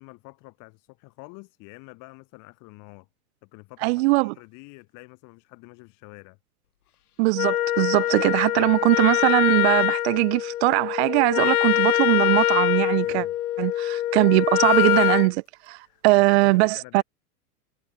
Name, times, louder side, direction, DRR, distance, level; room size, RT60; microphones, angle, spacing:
voice 1, 0.0-3.1 3.4-6.4 8.6-8.8 13.0-13.4 15.8-17.0, left 27 dB, 40° left, 4.7 m, -47 dB
voice 2, 3.8-4.3 7.2-13.2 13.6-15.8 16.0-17.0, right 25 dB, 45° right, 0.9 m, -21 dB
Wind instrument woodwind instrument, 7.3-15.3, left 12 dB, 75° left, 1.0 m, -23 dB
hypercardioid pair, 120°, 45 cm